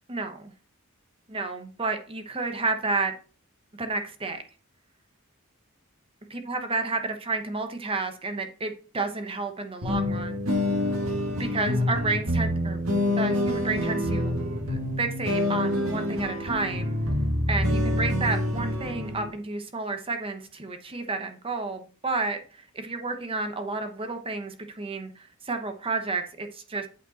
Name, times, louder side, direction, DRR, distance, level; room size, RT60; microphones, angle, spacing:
voice 1, 0.1-0.5 1.3-3.1 3.8-4.4 6.3-10.5 11.4-12.8 13.2-14.3 14.7-16.9 17.5-26.9, right 3 dB, 25° right, 6 dB, 0.9 m, -31 dB
sound 1, 9.8-19.3, left 1 dB, 75° right, 1.9 m, -27 dB
8.4 x 5.1 x 4.2 m, 0.38 s
head